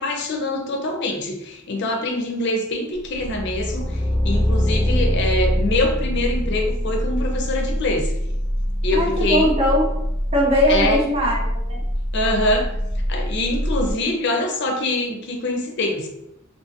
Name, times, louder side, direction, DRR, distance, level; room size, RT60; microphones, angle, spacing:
voice 1, 0.0-8.1 8.8-9.5 10.7-11.0 12.1-12.7 13.1-16.1, left 2 dB, 60° left, 2 dB, 0.5 m, -24 dB
sound 1, 2.9-13.9, equal, 60° right, 1.1 m, -25 dB
sound 2, 3.2-8.1, left 1 dB, 10° left, 0.8 m, -25 dB
voice 2, 8.9-10.0 10.3-11.8, equal, 30° right, -2 dB, 0.4 m, -20 dB
2.7 x 2.6 x 2.5 m, 0.85 s
head